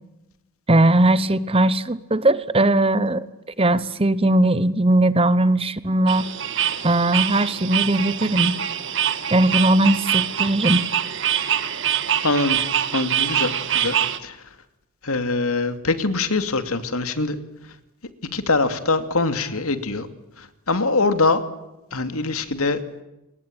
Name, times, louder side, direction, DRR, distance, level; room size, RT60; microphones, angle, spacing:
voice 1, 0.7-3.3 3.6-6.3 6.8-8.6 9.3-10.8, right 1 dB, 25° right, 16 dB, 1.0 m, -19 dB
sound 1, 6.1-14.2, right 10 dB, 60° right, 1.7 m, -24 dB
voice 2, 12.2-12.6 12.9-13.9 14.2-14.4 15.0-17.4 18.3-20.1 20.4-21.4 21.9-22.8, left 3 dB, 80° left, 10 dB, 2.6 m, -23 dB
28.5 x 22.5 x 8.9 m, 0.95 s
head